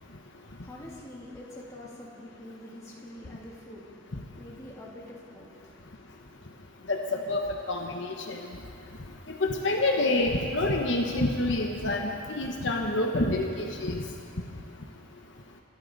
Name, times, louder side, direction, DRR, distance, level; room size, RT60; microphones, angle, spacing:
voice 1, 0.0-5.9, left 1 dB, 15° left, -5 dB, 2.7 m, -46 dB
voice 2, 6.9-8.5 9.3-14.0, left 2 dB, 65° left, 2 dB, 1.1 m, -27 dB
26.5 x 12.5 x 4.0 m, 2.5 s
head